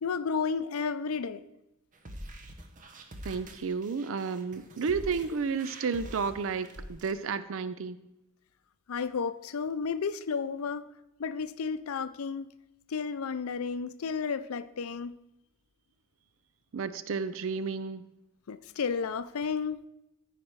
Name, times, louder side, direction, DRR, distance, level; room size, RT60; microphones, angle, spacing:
voice 1, 0.0-1.4 8.9-10.9 11.2-12.5 12.9-15.2 18.5-19.8, left 5 dB, 85° left, 0.5 m, -32 dB
sound 1, 1.9-7.1, right 1 dB, 40° right, 0.8 m, -45 dB
voice 2, 3.2-8.0 16.7-18.1, right 5 dB, 65° right, 0.4 m, -32 dB
13.5 x 5.0 x 4.6 m
head